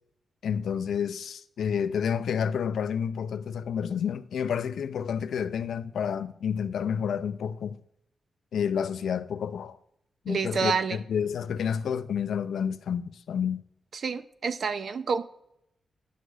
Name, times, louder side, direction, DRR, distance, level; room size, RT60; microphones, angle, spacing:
voice 1, 0.4-7.8 8.5-9.8 10.2-13.6, left 7 dB, 85° left, 0.4 m, -29 dB
voice 2, 10.3-11.0 13.9-15.2, right 5 dB, 50° right, 0.4 m, -28 dB
10.0 x 6.3 x 2.3 m
wide cardioid pair, 165°, 0 cm